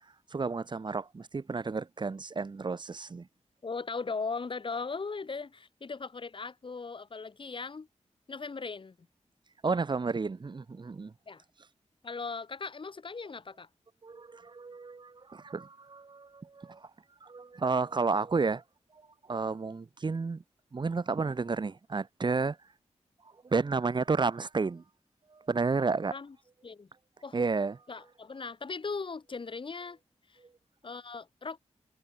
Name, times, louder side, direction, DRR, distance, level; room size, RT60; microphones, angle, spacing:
voice 1, 0.3-3.3 9.6-11.1 14.0-16.9 17.2-18.6 19.3-20.4 20.7-22.6 23.4-24.8 25.3-26.1 27.3-27.8, right 4 dB, 40° right, 1.7 m, -31 dB
voice 2, 3.6-7.9 8.3-9.0 11.3-11.4 12.0-13.7 26.1-26.4 26.6-26.9 27.2-27.4 27.9-30.0 30.3-30.4 30.8-31.6, left 4 dB, 45° left, 4.5 m, -38 dB
wide cardioid pair, 155°, 12 cm